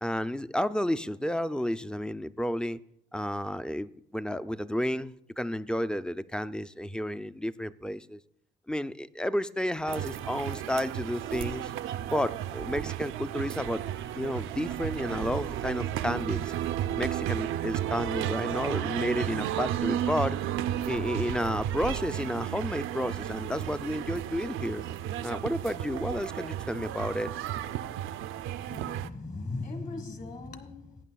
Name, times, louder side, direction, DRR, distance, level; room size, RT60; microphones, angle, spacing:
voice 1, 0.0-2.8 3.1-8.2 8.7-11.7 12.1-13.8 14.2-16.5 16.9-20.4 20.9-24.8 25.2-27.3, left 1 dB, 5° left, 15 dB, 0.3 m, -31 dB
sound 1, 9.9-29.1, right 11 dB, 85° right, 0.4 m, -33 dB
voice 2, 28.7-31.0, left 3 dB, 40° left, 10 dB, 1.5 m, -38 dB
18.0 x 9.3 x 2.3 m, 0.74 s
cardioid pair, 90°, 20 cm